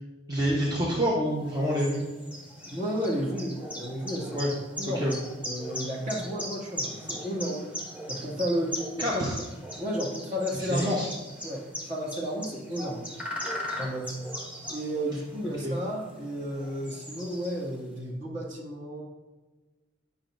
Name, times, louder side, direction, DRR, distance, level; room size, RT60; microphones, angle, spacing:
voice 1, 0.3-2.0 4.3-4.5 4.9-5.2 9.0-9.4 10.6-11.1 15.6-15.8, equal, 25° right, -4 dB, 0.9 m, -27 dB
sound 1, 1.3-17.9, left 1 dB, 5° right, 1.4 m, -39 dB
voice 2, 2.7-4.4 4.8-5.1 5.4-7.7 8.1-9.2 9.8-10.9 11.4-13.1 13.8-14.1 14.7-19.0, equal, 40° right, -4 dB, 2.1 m, -32 dB
10.5 x 5.9 x 2.5 m, 1.2 s
head